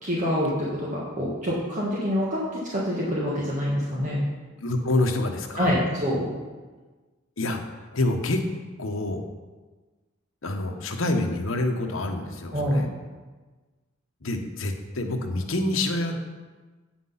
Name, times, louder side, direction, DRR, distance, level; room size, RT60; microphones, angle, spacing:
voice 1, 0.0-2.4 2.7-4.2 5.6-6.3 12.5-12.9, equal, 40° right, -6 dB, 1.5 m, -26 dB
voice 2, 4.6-5.8 7.4-8.4 8.8-9.2 10.4-12.9 14.2-16.2, left 2 dB, 75° left, 4 dB, 1.0 m, -27 dB
8.6 x 5.9 x 5.6 m, 1.3 s
head